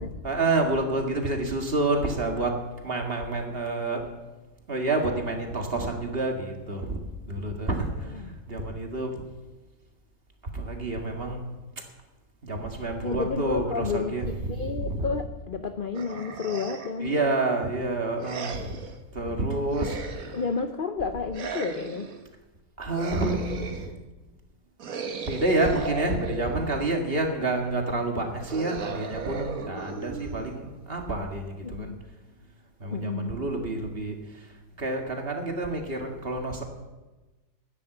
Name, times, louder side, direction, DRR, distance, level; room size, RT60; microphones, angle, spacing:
voice 1, 0.2-2.5 2.8-4.0 4.7-7.0 7.3-8.1 8.5-9.2 10.5-11.4 12.4-14.3 14.5-15.1 17.0-18.8 19.1-20.0 22.8-23.8 25.3-31.9 32.8-34.2 34.8-36.6, right 2 dB, 35° right, 2 dB, 2.0 m, -28 dB
voice 2, 13.0-17.3 20.3-22.1 31.6-32.0 32.9-33.4, left 5 dB, 65° left, 8 dB, 0.5 m, -31 dB
sound 1, 15.9-17.1 18.2-19.0 19.7-20.6 21.3-22.2 22.9-24.0 24.8-26.9 28.4-30.8, right 5 dB, 55° right, 1.5 m, -37 dB
12.5 x 9.9 x 7.8 m, 1.2 s
omnidirectional pair, 1.9 m